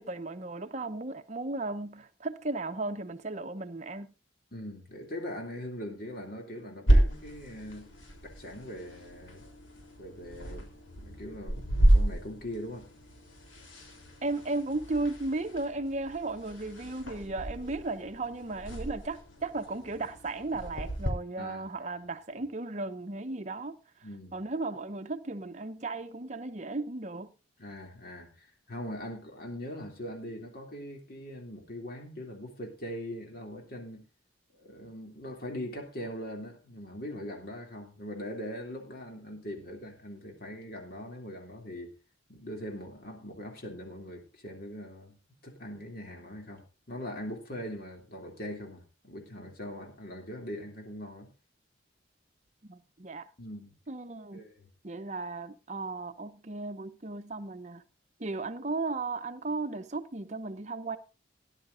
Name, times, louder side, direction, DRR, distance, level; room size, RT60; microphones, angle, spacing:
voice 1, 0.0-4.1 14.2-23.8 24.3-27.3 52.6-53.3 53.9-54.4 54.8-57.8 58.2-61.0, right 2 dB, 35° right, 0.8 m, -35 dB
voice 2, 4.5-7.9 8.2-9.4 10.0-12.9 21.4-21.7 24.0-24.4 27.6-34.0 34.6-41.9 42.3-45.2 45.4-46.6 46.9-51.3 53.4-53.7 54.3-54.7, equal, 50° left, 2.9 m, -41 dB
sound 1, 6.9-21.1, right 1 dB, 90° left, 3.5 m, -31 dB
18.5 x 11.0 x 2.6 m
head